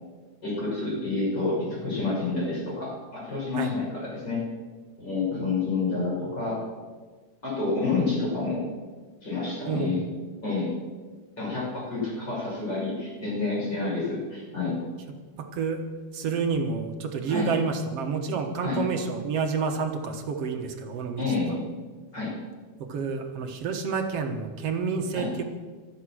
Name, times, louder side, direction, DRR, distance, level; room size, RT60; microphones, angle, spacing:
voice 1, 0.4-4.4 5.0-6.6 7.4-8.6 9.2-10.0 10.4-10.7 11.4-14.7 17.3-17.5 18.6-18.8 21.2-21.6 22.1-22.3 25.1-25.3, left 3 dB, 35° left, -6 dB, 6.9 m, -29 dB
voice 2, 9.7-10.0 15.4-15.8 16.1-21.2 22.8-25.4, right 5 dB, 60° right, 4 dB, 2.1 m, -29 dB
24.5 x 8.9 x 6.3 m, 1.4 s
omnidirectional pair, 3.4 m